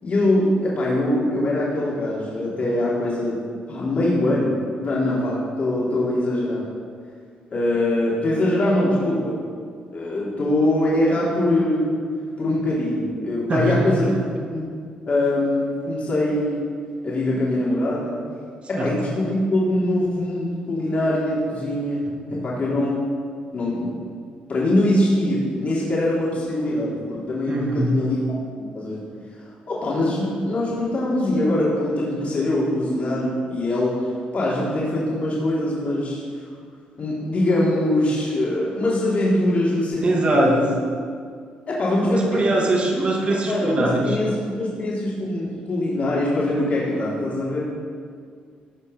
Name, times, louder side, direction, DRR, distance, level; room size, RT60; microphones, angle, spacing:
voice 1, 0.0-3.4 3.7-4.5 4.8-6.6 7.5-9.4 9.9-11.9 12.4-14.1 14.5-14.7 15.1-16.6 17.0-18.1 18.7-23.0 23.5-24.0 24.5-29.0 29.3-34.0 34.3-36.2 37.0-40.7 41.7-42.5 43.3-47.6, left 1 dB, 45° left, -6 dB, 3.5 m, -23 dB
voice 2, 13.5-14.1 18.8-18.9 22.3-22.4 27.5-28.0 40.0-40.6 42.0-44.2, right 2 dB, 40° right, -1 dB, 2.5 m, -22 dB
16.5 x 5.6 x 5.5 m, 2.1 s
cardioid pair, 85°, 3 cm